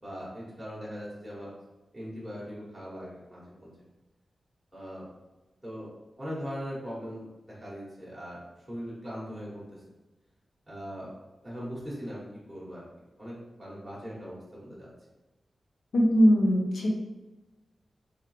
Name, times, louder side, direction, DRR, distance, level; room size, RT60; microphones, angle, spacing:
voice 1, 0.0-1.5 1.9-3.7 4.7-5.1 5.6-5.9 6.2-9.6 10.7-11.1 11.4-12.2 12.5-12.9 13.2-14.9, equal, ahead, -9 dB, 1.1 m, -40 dB
voice 2, 15.9-16.9, equal, 80° left, -1 dB, 0.8 m, -21 dB
3.5 x 3.3 x 3.2 m, 1.1 s
wide cardioid pair, 160°, 0 cm